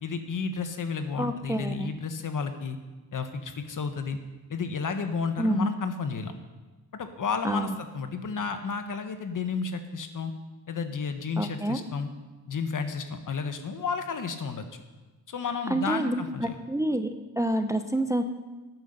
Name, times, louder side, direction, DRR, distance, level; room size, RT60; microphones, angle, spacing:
voice 1, 0.0-2.8 3.1-4.2 4.5-6.3 6.9-10.3 10.7-12.1 12.5-14.8 15.3-16.5, left 5 dB, 50° left, 8 dB, 1.3 m, -32 dB
voice 2, 1.2-1.9 5.4-5.7 7.4-7.7 11.4-11.8 15.7-17.1 17.4-18.2, right 1 dB, 10° right, 8 dB, 0.7 m, -28 dB
11.5 x 9.1 x 6.7 m, 1.2 s
cardioid pair, 85°, 39 cm